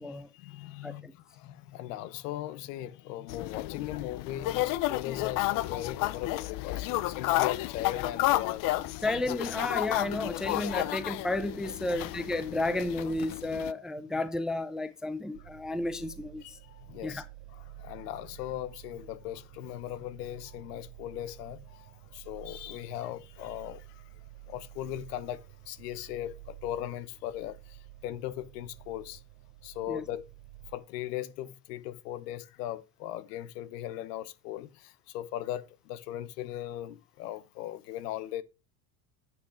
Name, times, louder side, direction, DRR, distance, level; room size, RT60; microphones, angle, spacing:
voice 1, 0.0-9.4 16.4-17.2 17.5-24.1 24.5-29.2 29.6-30.3 30.7-38.4, left 13 dB, 85° left, 1.1 m, -39 dB
voice 2, 0.8-1.1 9.0-16.6 17.0-17.3 29.9-30.1, left 2 dB, ahead, 0.4 m, -32 dB
sound 1, 3.3-13.7, left 17 dB, 45° left, 0.6 m, -32 dB
sound 2, 15.3-30.8, right 16 dB, 65° right, 0.8 m, -51 dB
9.6 x 5.9 x 3.8 m
supercardioid pair, 130°, 46 cm